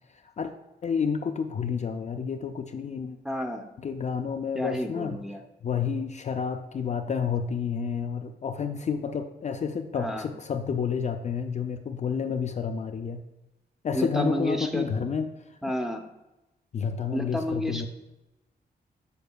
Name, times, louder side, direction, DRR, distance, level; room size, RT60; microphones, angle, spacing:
voice 1, 0.1-0.5 0.8-3.2 3.8-5.2 5.6-13.2 13.8-15.3 16.7-17.9, left 6 dB, 40° left, 6 dB, 0.4 m, -30 dB
voice 2, 3.2-3.7 4.5-5.4 9.9-10.3 13.9-14.9 15.6-16.0 17.1-17.9, equal, ahead, 3 dB, 0.6 m, -30 dB
6.7 x 6.7 x 2.2 m, 0.97 s
wide cardioid pair, 105°, 18 cm